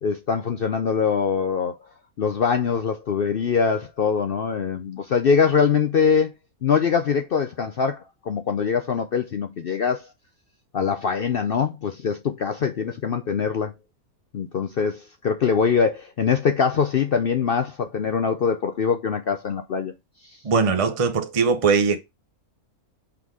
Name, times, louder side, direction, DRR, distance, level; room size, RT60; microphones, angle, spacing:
voice 1, 0.0-1.8 2.2-6.3 6.6-10.1 10.7-13.7 14.3-19.9, left 6 dB, 60° left, 0.6 m, -23 dB
voice 2, 20.4-22.0, right 5 dB, 40° right, 0.5 m, -20 dB
5.9 x 3.8 x 4.8 m
omnidirectional pair, 1.6 m